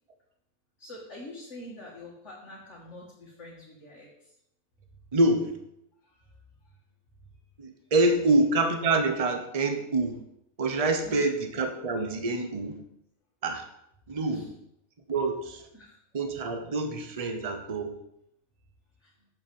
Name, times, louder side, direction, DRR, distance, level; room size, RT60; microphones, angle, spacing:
voice 1, 0.8-4.3 6.0-6.8 8.1-8.2 11.0-11.3 14.3-14.5 15.7-16.0 17.1-17.3 19.0-19.3, left 1 dB, 55° left, -6 dB, 2.4 m, -46 dB
voice 2, 5.1-5.5 7.6-10.2 10.6-12.8 13.4-13.6 14.1-14.5 15.1-15.6 16.1-18.0, right 2 dB, 30° right, 5 dB, 1.0 m, -26 dB
7.1 x 6.1 x 7.1 m, 0.78 s
omnidirectional pair, 1.5 m